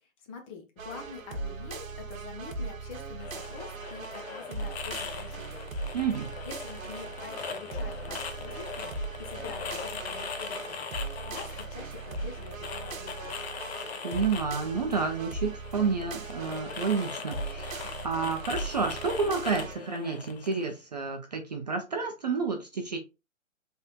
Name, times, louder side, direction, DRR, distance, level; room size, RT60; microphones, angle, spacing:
voice 1, 0.0-5.7 6.4-13.4, left 5 dB, 25° left, 3 dB, 0.9 m, -46 dB
sound 1, 0.8-19.7, right 3 dB, 80° right, 0.9 m, -39 dB
sound 2, 3.2-20.7, left 6 dB, 50° left, 0.8 m, -41 dB
voice 2, 5.9-6.3 14.0-23.0, right 4 dB, 35° right, 4 dB, 0.4 m, -30 dB
4.2 x 3.3 x 2.3 m, 0.28 s
figure-of-eight pair, 135°, 40 cm